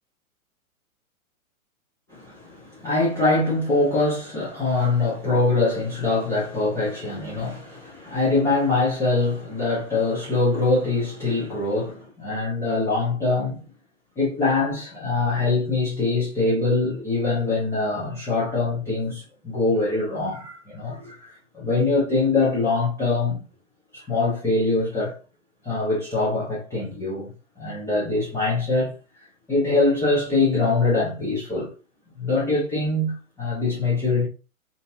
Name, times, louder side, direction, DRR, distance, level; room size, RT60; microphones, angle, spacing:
voice 1, 2.1-13.6 14.2-23.4 23.9-25.2 25.6-27.3 27.6-28.9 29.5-31.7 32.2-34.3, left 3 dB, 5° left, 0.4 m, -23 dB
2.5 x 2.3 x 2.6 m
figure-of-eight pair, 115°, 43 cm